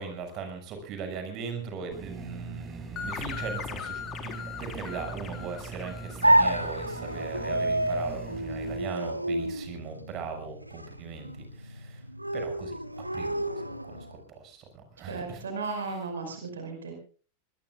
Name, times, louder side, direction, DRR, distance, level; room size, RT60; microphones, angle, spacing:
voice 1, 0.0-12.1 12.3-12.8 13.1-15.4 15.8-16.0, right 5 dB, 35° right, 6 dB, 6.4 m, -39 dB
sound 1, 1.9-8.8, right 4 dB, 20° right, 6.3 m, -42 dB
sound 2, 3.0-7.3, left 6 dB, 30° left, 4.0 m, -40 dB
sound 3, 6.2-14.2, right 1 dB, 85° right, 1.1 m, -29 dB
voice 2, 15.1-16.9, right 4 dB, 70° right, 5 dB, 5.3 m, -35 dB
25.5 x 21.0 x 2.4 m, 0.39 s
figure-of-eight pair, 90°, 0 cm